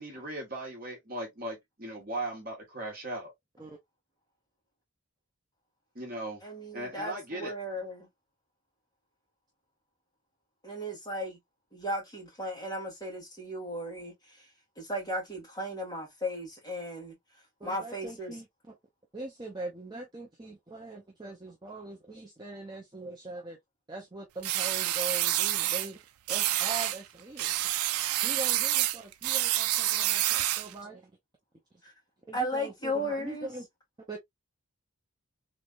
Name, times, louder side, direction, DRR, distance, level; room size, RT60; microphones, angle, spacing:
voice 1, 0.0-3.3 5.9-6.4 6.7-7.5, right 1 dB, 40° right, 1.3 m, -38 dB
voice 2, 6.4-8.1 10.6-11.4 11.7-14.5 14.8-17.1 17.6-18.3 31.8-31.9 32.3-33.5, equal, 15° left, 2.0 m, -35 dB
voice 3, 17.6-18.8 19.1-23.6 23.9-26.0 26.3-27.6 28.2-31.1 32.3-33.7 34.1-34.2, right 2 dB, 20° right, 0.6 m, -42 dB
sound 1, 24.4-25.9 26.3-27.0 27.4-30.7, right 14 dB, 80° right, 0.3 m, -28 dB
3.2 x 3.1 x 2.4 m
head